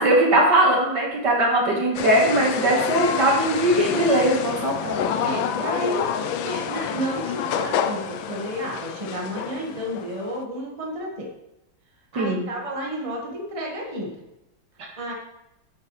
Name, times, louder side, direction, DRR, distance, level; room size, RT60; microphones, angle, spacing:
voice 1, 0.0-5.4 12.1-12.5, right 1 dB, 60° right, -1 dB, 2.3 m, -20 dB
sound 1, 1.9-10.4, left 8 dB, 85° left, 1.4 m, -28 dB
voice 2, 2.6-3.0 5.2-6.1 6.4-11.3 12.1-14.1 15.0-15.1, equal, 20° right, -1 dB, 1.5 m, -31 dB
9.6 x 8.4 x 3.3 m, 0.91 s
omnidirectional pair, 2.1 m